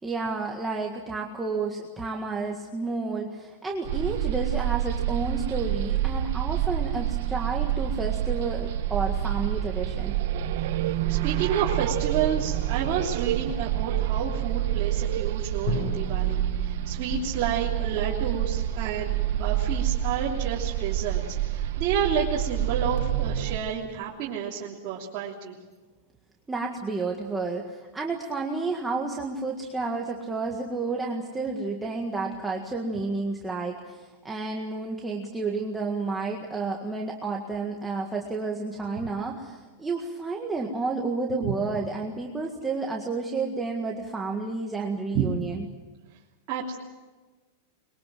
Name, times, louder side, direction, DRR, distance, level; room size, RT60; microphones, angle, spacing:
voice 1, 0.0-10.2 26.5-45.6, right 3 dB, 10° right, -1 dB, 1.7 m, -31 dB
sound 1, 3.8-23.6, right 12 dB, 60° right, 1.6 m, -28 dB
voice 2, 10.8-25.5 45.1-45.3 46.5-46.8, right 7 dB, 35° right, -5 dB, 3.1 m, -30 dB
Drum, 15.7-19.4, left 2 dB, 60° left, 7.5 m, -37 dB
24.0 x 22.5 x 7.7 m, 1.3 s
supercardioid pair, 165°, 0 cm